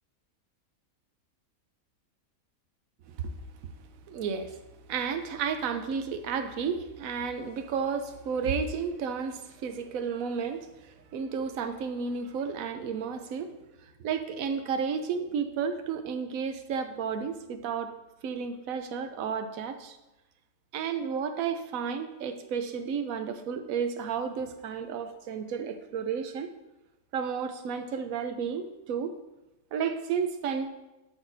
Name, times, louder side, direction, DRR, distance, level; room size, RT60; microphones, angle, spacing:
voice 1, 4.1-4.6 4.9-13.5 14.0-17.9 18.2-20.0 20.7-26.5 27.1-29.1 29.7-30.7, right 6 dB, 70° right, 7 dB, 1.1 m, -32 dB
12.0 x 6.3 x 2.7 m, 1.0 s
omnidirectional pair, 1.5 m